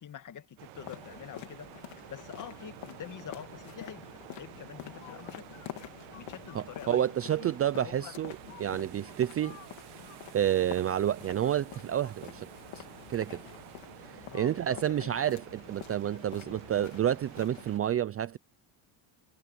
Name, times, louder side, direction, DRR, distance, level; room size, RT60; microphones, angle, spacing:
voice 1, 0.0-1.7 2.1-4.0 4.3-5.5 6.2-7.0 7.4-7.5 7.7-8.1 14.3-15.3, left 9 dB, 40° left, 2.1 m, -45 dB
sound 1, 0.6-17.8, right 20 dB, 80° right, 1.5 m, -51 dB
sound 2, 0.7-17.8, left 15 dB, 65° left, 2.9 m, -48 dB
voice 2, 6.5-9.6 10.3-12.5 12.7-12.8 13.1-13.4 14.1-18.4, right 11 dB, 30° right, 0.5 m, -29 dB
sound 3, 7.9-14.3, right 12 dB, 55° right, 3.2 m, -57 dB
cardioid pair, 125°, 49 cm